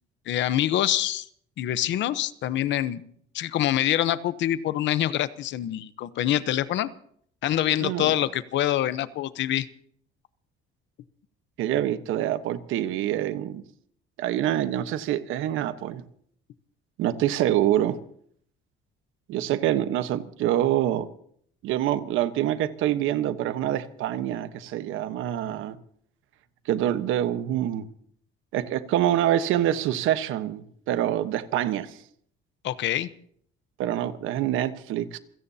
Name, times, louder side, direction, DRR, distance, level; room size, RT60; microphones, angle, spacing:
voice 1, 0.3-1.3 1.6-3.0 3.3-6.9 7.4-9.7 32.6-33.1, left 12 dB, 65° left, 0.9 m, -25 dB
voice 2, 7.8-8.2 11.6-13.6 14.2-16.0 17.0-18.0 19.3-21.1 21.6-25.8 26.7-27.9 28.5-32.0 33.8-35.2, right 12 dB, 80° right, 1.2 m, -26 dB
27.5 x 17.0 x 2.9 m
cardioid pair, 145°, 20 cm